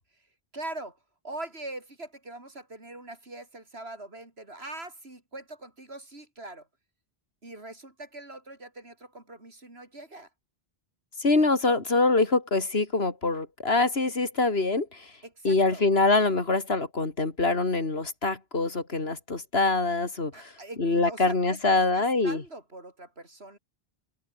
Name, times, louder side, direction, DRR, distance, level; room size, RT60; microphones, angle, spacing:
voice 1, 0.5-1.0 1.2-6.7 7.4-10.3 15.2-15.9 20.3-23.6, right 2 dB, 85° right, 5.3 m, -42 dB
voice 2, 11.2-15.1 15.4-20.5 20.8-22.4, left 3 dB, 80° left, 3.1 m, -24 dB
open air
omnidirectional pair, 1.0 m